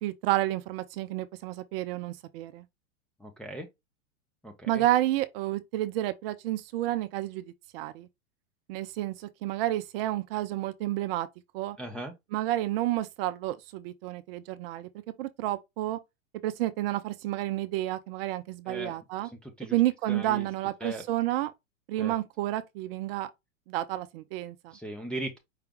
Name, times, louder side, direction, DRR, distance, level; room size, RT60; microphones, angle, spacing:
voice 1, 0.0-2.6 4.7-8.1 8.7-11.3 11.5-11.8 12.3-14.9 15.2-16.0 16.4-19.3 19.7-21.5 21.9-23.3 23.7-24.7, right 15 dB, 45° right, 0.5 m, -30 dB
voice 2, 3.2-3.7 4.4-4.8 11.8-12.1 18.7-19.0 19.4-19.8 20.1-20.5 20.8-21.0 22.0-22.2 24.7-25.4, right 1 dB, ahead, 0.5 m, -38 dB
4.9 x 2.2 x 3.6 m
hypercardioid pair, 110°, 41 cm